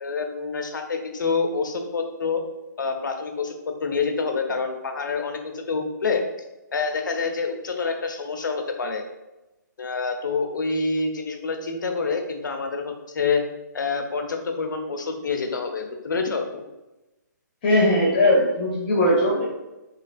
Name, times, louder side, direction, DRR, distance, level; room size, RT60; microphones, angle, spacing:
voice 1, 0.0-2.4 2.8-3.5 3.8-6.2 6.7-9.0 9.8-13.4 13.7-16.5, left 4 dB, 85° left, 5 dB, 0.6 m, -27 dB
voice 2, 17.6-19.4, left 1 dB, 20° left, -4 dB, 0.5 m, -19 dB
3.1 x 2.8 x 2.4 m, 1.0 s
hypercardioid pair, 170°, 10 cm